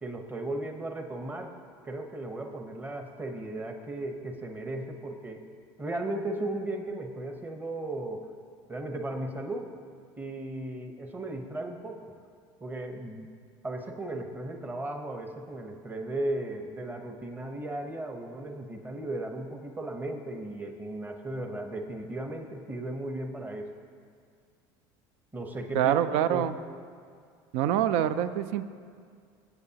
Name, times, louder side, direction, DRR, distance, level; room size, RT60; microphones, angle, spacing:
voice 1, 0.0-1.5 1.8-5.5 5.8-8.3 8.7-9.7 10.2-12.0 12.6-13.3 13.6-23.7 25.3-26.6, right 1 dB, 15° right, 4 dB, 1.0 m, -36 dB
voice 2, 25.7-26.5 27.5-28.6, right 10 dB, 70° right, 13 dB, 0.5 m, -25 dB
17.5 x 8.1 x 2.9 m, 2.2 s
supercardioid pair, 105°, 11 cm